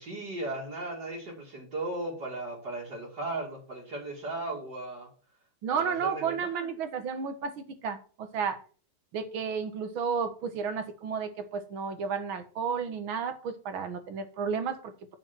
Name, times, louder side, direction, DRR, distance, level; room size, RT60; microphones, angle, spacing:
voice 1, 0.0-5.1 5.7-6.8, right 2 dB, 50° right, -3 dB, 2.9 m, -37 dB
voice 2, 5.6-8.6 9.1-14.9, right 6 dB, 70° right, 9 dB, 2.0 m, -32 dB
8.0 x 6.7 x 6.0 m, 0.40 s
omnidirectional pair, 2.4 m